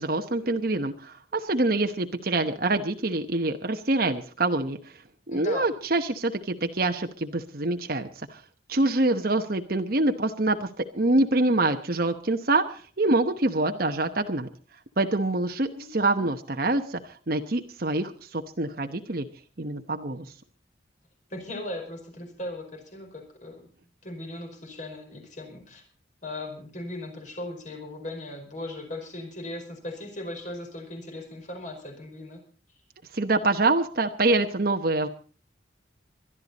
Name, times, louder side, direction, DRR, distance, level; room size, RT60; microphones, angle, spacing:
voice 1, 0.0-4.8 5.3-8.4 8.7-14.5 15.0-19.3 19.6-20.3 33.1-35.1, right 2 dB, 50° right, 5 dB, 1.0 m, -25 dB
voice 2, 5.3-5.7 15.7-15.9 16.2-16.3 21.3-23.6 24.0-25.8 26.2-32.4, left 1 dB, 40° left, 4 dB, 4.9 m, -38 dB
22.0 x 12.5 x 4.1 m, 0.40 s
head